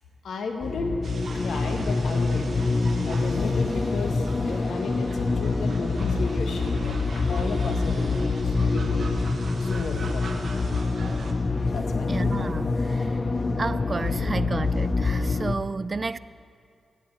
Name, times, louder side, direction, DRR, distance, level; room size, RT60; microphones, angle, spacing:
voice 1, 0.2-1.0 1.3-9.3 9.6-10.5 11.7-12.1, left 4 dB, 75° left, 4 dB, 1.1 m, -34 dB
sound 1, 0.6-15.5, left 3 dB, 45° left, 0.7 m, -26 dB
sound 2, 1.0-11.3, right 3 dB, 65° right, 1.2 m, -43 dB
voice 2, 12.1-13.1 13.5-16.2, right 4 dB, 45° right, 17 dB, 0.3 m, -31 dB
17.0 x 8.7 x 3.9 m, 2.3 s
supercardioid pair, 45°, 0 cm